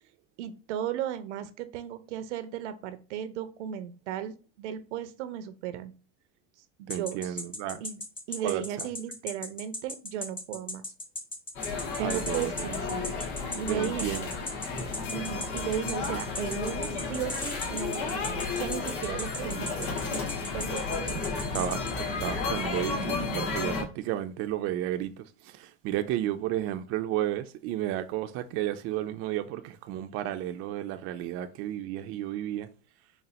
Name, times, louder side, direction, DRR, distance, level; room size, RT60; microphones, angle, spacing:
voice 1, 0.4-5.9 6.8-7.4 7.8-8.0 8.3-10.9 11.7-13.1 13.5-14.1 15.1-21.4, right 9 dB, 80° right, 0.6 m, -36 dB
sound 1, 6.9-21.9, left 1 dB, 15° left, 0.6 m, -37 dB
voice 2, 6.9-7.8 8.4-8.9 12.0-12.7 13.7-14.3 16.1-16.2 21.5-32.7, right 12 dB, 45° right, 0.4 m, -33 dB
sound 2, 11.5-23.8, left 4 dB, 65° left, 1.6 m, -33 dB
4.0 x 2.0 x 4.1 m
supercardioid pair, 120°, 35 cm